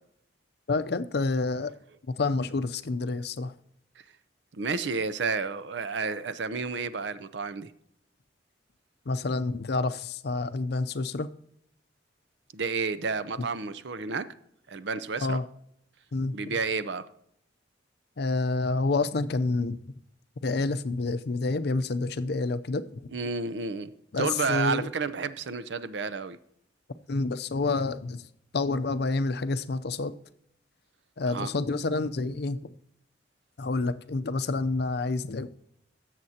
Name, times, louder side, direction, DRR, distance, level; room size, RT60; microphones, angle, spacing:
voice 1, 0.7-1.7 2.2-3.5 9.1-11.3 13.4-13.5 15.2-15.4 16.1-16.5 18.2-19.8 20.4-23.1 24.1-24.9 27.1-28.2 28.5-30.1 31.2-32.7 33.6-35.5, left 3 dB, 60° left, 0.6 m, -28 dB
voice 2, 4.6-7.7 12.5-14.3 14.7-15.4 16.3-17.1 23.1-26.4 31.2-31.5, right 4 dB, 70° right, 0.6 m, -31 dB
17.0 x 7.5 x 2.8 m
head